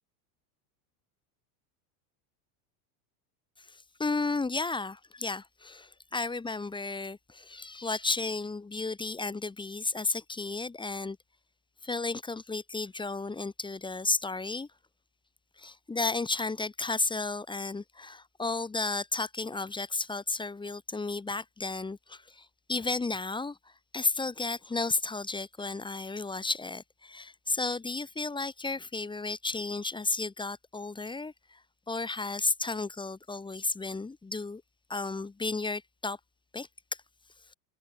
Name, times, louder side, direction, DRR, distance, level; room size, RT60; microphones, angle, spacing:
voice 1, 3.6-11.2 11.8-14.7 15.6-31.6 31.9-34.6 34.9-36.2 36.5-36.7, left 3 dB, 10° left, 1.7 m, -33 dB
supercardioid pair, 135°, 45 cm